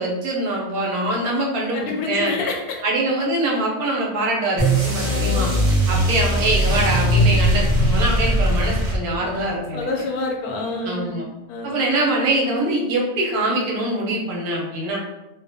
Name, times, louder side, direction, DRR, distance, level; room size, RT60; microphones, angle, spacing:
voice 1, 0.0-2.3 2.8-5.5 5.9-9.9 10.8-11.2 11.6-15.0, right 2 dB, 85° right, -2 dB, 1.2 m, -23 dB
voice 2, 1.7-2.8 5.0-5.7 9.2-9.3 9.7-11.2 11.5-11.7, left 3 dB, 85° left, 0 dB, 1.1 m, -27 dB
sound 1, 4.6-9.4, equal, 40° right, 0.7 m, -19 dB
2.8 x 2.1 x 2.6 m, 1.0 s
omnidirectional pair, 1.6 m